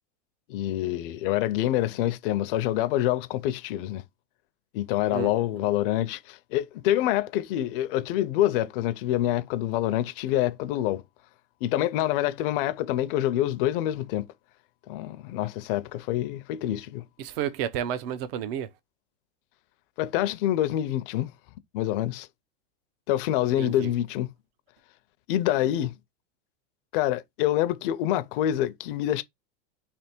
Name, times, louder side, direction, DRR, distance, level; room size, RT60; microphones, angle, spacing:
voice 1, 0.5-4.0 4.7-11.0 11.6-14.3 14.9-17.0 20.0-21.3 21.7-22.3 23.1-24.3 25.3-25.9 26.9-29.2, left 13 dB, 50° left, 0.6 m, -26 dB
voice 2, 17.2-18.7 23.6-23.9, right 9 dB, 55° right, 0.7 m, -31 dB
3.4 x 2.9 x 4.3 m
supercardioid pair, 145°, 35 cm